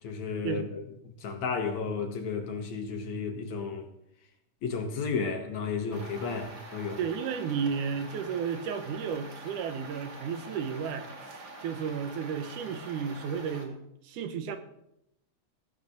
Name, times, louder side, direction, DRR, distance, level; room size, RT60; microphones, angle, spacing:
voice 1, 0.0-0.8 1.2-3.9 4.6-7.0, left 5 dB, 65° left, 2.5 m, -33 dB
sound 1, 5.9-13.7, right 2 dB, 40° right, 2.6 m, -46 dB
voice 2, 7.0-14.6, right 6 dB, 75° right, 2.4 m, -33 dB
15.5 x 9.1 x 6.6 m
omnidirectional pair, 3.9 m